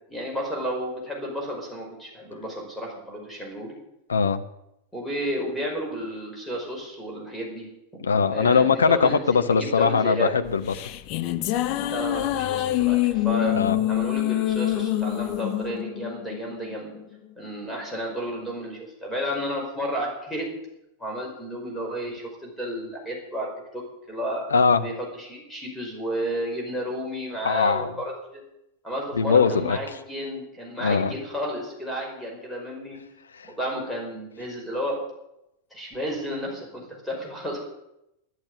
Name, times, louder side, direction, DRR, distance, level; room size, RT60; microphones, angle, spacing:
voice 1, 0.1-3.7 4.9-7.7 8.1-10.3 11.9-13.6 13.9-17.0 17.4-20.5 21.0-23.5 23.7-23.8 24.1-24.4 24.8-28.4 28.8-33.0 33.4-35.0 35.7-37.6, equal, 5° left, -1 dB, 5.3 m, -32 dB
voice 2, 4.1-4.4 8.0-10.6 13.5-13.8 24.5-24.8 27.4-27.9 29.1-29.8 30.8-31.1, left 5 dB, 70° left, 8 dB, 1.0 m, -20 dB
sound 1, 10.5-17.0, left 13 dB, 40° left, 0.8 m, -26 dB
12.0 x 11.5 x 8.5 m, 0.85 s
figure-of-eight pair, 90°, 0 cm